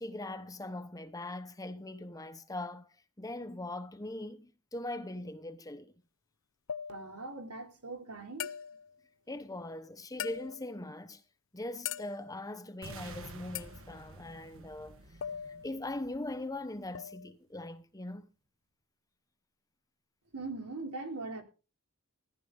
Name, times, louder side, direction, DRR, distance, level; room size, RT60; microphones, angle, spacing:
voice 1, 0.0-2.9 3.2-5.9 9.3-11.2 11.5-15.2 15.6-18.3, left 2 dB, 15° left, 0.9 m, -41 dB
sound 1, 6.7-7.3 8.4-9.0 10.2-10.8 11.8-12.4 13.5-13.8 15.2-15.9 16.9-17.3, left 9 dB, 60° left, 0.5 m, -41 dB
voice 2, 6.9-8.6 20.3-21.4, right 3 dB, 90° right, 3.3 m, -41 dB
sound 2, 12.8-16.8, right 2 dB, 60° right, 1.4 m, -50 dB
15.0 x 11.0 x 3.9 m
head